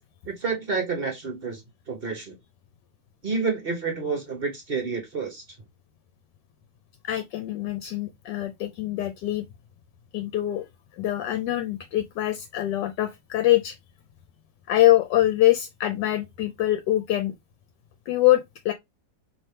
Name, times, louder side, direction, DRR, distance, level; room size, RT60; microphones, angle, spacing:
voice 1, 0.3-2.4 3.2-5.6, right 4 dB, 45° right, 0.9 m, -29 dB
voice 2, 7.0-9.5 10.1-10.6 11.0-13.7 14.7-17.3 18.1-18.7, left 14 dB, 80° left, 1.2 m, -24 dB
3.3 x 2.9 x 4.2 m
omnidirectional pair, 1.9 m